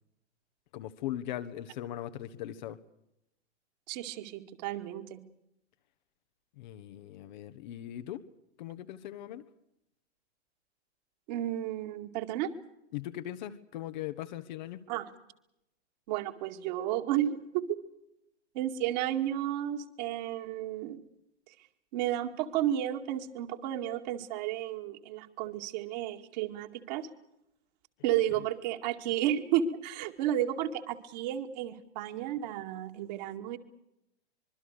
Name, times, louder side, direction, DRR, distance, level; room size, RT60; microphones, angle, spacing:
voice 1, 0.7-2.8 6.6-8.2 8.6-9.4 12.9-14.8 28.3-28.4, left 12 dB, 40° left, 10 dB, 1.4 m, -39 dB
voice 2, 3.9-5.2 11.3-12.5 14.9-15.1 16.1-17.8 18.5-21.0 21.9-27.1 28.0-33.6, right 11 dB, 40° right, 6 dB, 2.3 m, -32 dB
25.0 x 23.0 x 6.7 m, 0.83 s
figure-of-eight pair, 105°, 34 cm